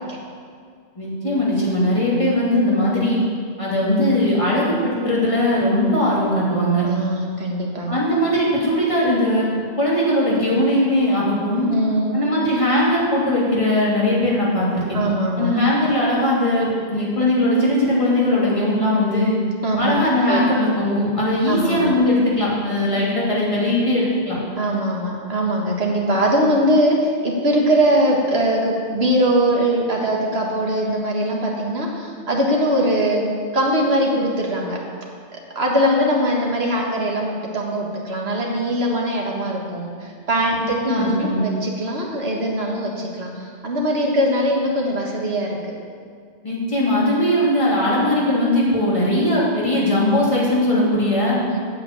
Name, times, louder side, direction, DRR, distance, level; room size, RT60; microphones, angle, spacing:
voice 1, 1.0-3.2 3.6-6.8 7.9-9.5 9.8-11.7 12.1-14.8 15.4-19.3 19.8-24.4 40.6-41.4 46.4-51.4, left 1 dB, 30° left, -6 dB, 3.0 m, -19 dB
voice 2, 6.8-7.9 11.7-12.2 14.9-15.5 19.6-20.4 21.5-21.9 24.6-34.8 35.3-45.7 51.5-51.6, right 1 dB, 70° right, -1 dB, 2.1 m, -21 dB
8.6 x 8.0 x 8.3 m, 2.1 s
omnidirectional pair, 1.1 m